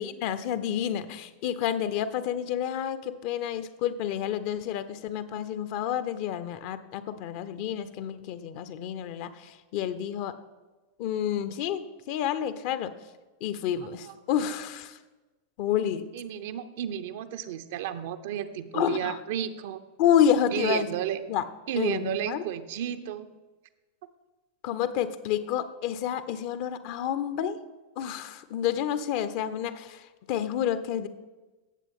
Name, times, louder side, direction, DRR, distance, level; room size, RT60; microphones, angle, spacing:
voice 1, 0.0-10.3 11.0-12.9 13.4-15.0 15.6-16.0 18.7-19.2 20.0-20.9 21.3-21.4 21.8-22.4 24.6-27.6 28.0-30.0 30.3-31.1, left 9 dB, 45° left, 13 dB, 0.7 m, -29 dB
voice 2, 16.1-19.8 20.5-21.2 21.7-23.3, right 10 dB, 55° right, 10 dB, 0.7 m, -32 dB
17.5 x 7.4 x 3.7 m, 1.2 s
figure-of-eight pair, 90°, 0 cm